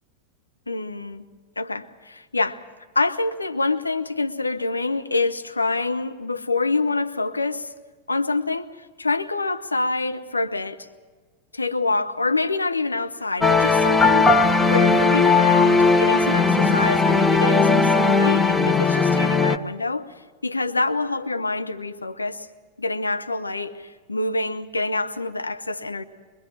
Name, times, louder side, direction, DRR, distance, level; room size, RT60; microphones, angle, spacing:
voice 1, 0.7-1.2 1.6-2.6 2.9-7.7 8.1-10.9 11.5-20.1 20.4-22.5 22.8-26.0, left 3 dB, 80° left, 1.1 m, -26 dB
sound 1, 13.4-19.6, left 4 dB, 5° left, 0.9 m, -18 dB
23.5 x 21.5 x 7.5 m
figure-of-eight pair, 90°, 0 cm